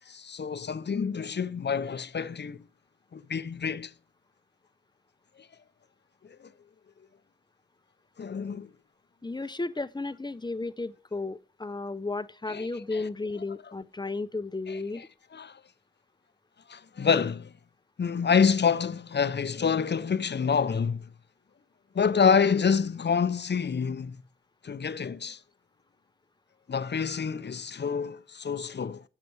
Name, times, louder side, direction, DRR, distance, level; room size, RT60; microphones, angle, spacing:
voice 1, 0.1-2.6 3.1-3.9 6.3-6.4 8.2-8.7 12.5-13.0 14.7-15.1 15.3-15.6 16.7-17.5 18.0-21.1 21.9-24.2 24.6-25.4 26.7-29.0, left 6 dB, 70° left, 0.5 m, -27 dB
voice 2, 9.2-15.0, left 3 dB, 25° left, 0.6 m, -34 dB
8.2 x 6.6 x 4.6 m
wide cardioid pair, 50°, 19 cm